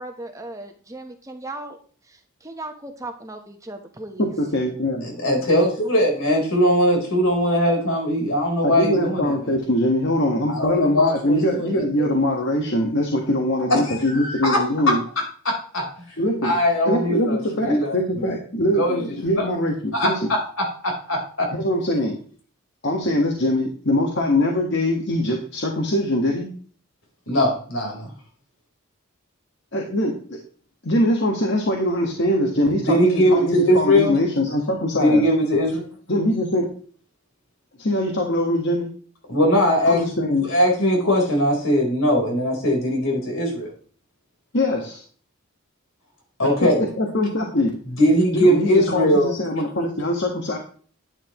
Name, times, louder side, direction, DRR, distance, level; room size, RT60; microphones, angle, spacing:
voice 1, 0.0-1.8 2.1-4.3, right 2 dB, 15° right, 5 dB, 1.0 m, -37 dB
voice 2, 4.2-5.1 8.6-15.0 16.2-16.5 16.9-20.3 21.5-22.2 22.8-26.5 29.7-30.2 30.8-35.2 36.1-36.7 37.8-38.9 39.9-40.5 44.5-45.0 46.6-47.7 48.3-50.6, left 1 dB, 55° left, 1 dB, 1.5 m, -22 dB
voice 3, 5.0-9.3 10.5-11.7 12.0-12.1 13.7-15.0 15.4-15.9 16.4-18.0 18.7-19.0 19.4-19.5 19.9-21.5 27.3-28.1 32.8-34.2 34.9-35.8 39.3-40.0 40.4-43.7 46.4-46.9 47.9-49.3, equal, 75° left, 0 dB, 4.1 m, -20 dB
11.5 x 9.5 x 3.1 m, 0.43 s
head